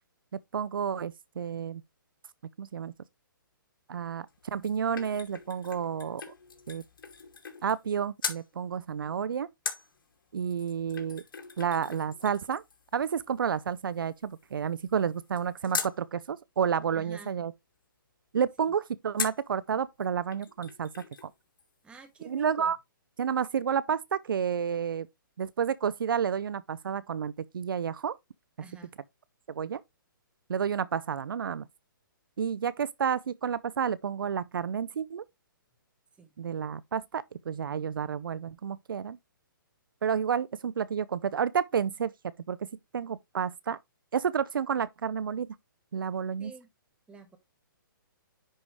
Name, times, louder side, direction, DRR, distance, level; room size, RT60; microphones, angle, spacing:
voice 1, 0.5-1.8 2.6-2.9 3.9-6.2 6.7-6.8 7.6-9.5 10.3-11.2 11.6-12.6 12.9-17.5 18.3-20.9 21.2-21.3 22.2-22.8 23.2-25.1 25.4-28.1 29.5-29.8 30.5-31.7 32.4-35.2 36.4-39.2 40.0-42.1 42.5-42.7 42.9-43.8 44.1-45.6 45.9-46.5, right 7 dB, 75° right, 0.6 m, -30 dB
sound 1, 4.3-7.9 8.2-8.5 9.7-16.0 19.2-19.5 20.0-20.1 20.3-21.3 21.6-21.7, left 6 dB, 70° left, 2.6 m, -40 dB
voice 2, 16.9-17.4 18.6-18.7 21.8-22.7 28.6-28.9 36.2-36.4 46.4-46.7 47.1-47.4, right 4 dB, 10° right, 1.6 m, -50 dB
10.0 x 5.1 x 3.1 m
hypercardioid pair, 145°, 11 cm